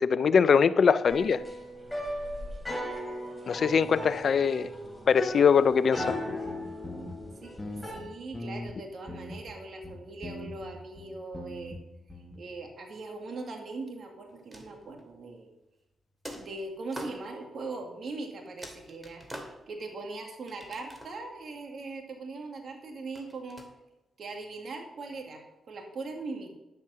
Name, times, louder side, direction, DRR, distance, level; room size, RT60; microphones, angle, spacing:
voice 1, 0.0-1.4 3.5-4.7 5.1-6.2, left 6 dB, 60° left, 0.6 m, -22 dB
sound 1, 1.1-8.0, equal, ahead, 3.7 m, -37 dB
sound 2, 6.0-6.1 6.5-7.3 7.6-8.7 9.1-9.5 9.8-11.8 12.1-12.4, left 1 dB, 25° left, 1.8 m, -41 dB
voice 2, 7.9-11.8 12.4-15.5 16.3-23.6 24.2-26.5, right 3 dB, 60° right, 2.0 m, -40 dB
sound 3, 14.3-15.1 16.2-17.2 18.1-18.2 18.6-19.9 20.5-21.3 23.1-23.6, equal, 20° right, 2.7 m, -45 dB
11.0 x 7.3 x 6.2 m
cardioid pair, 65°, 0 cm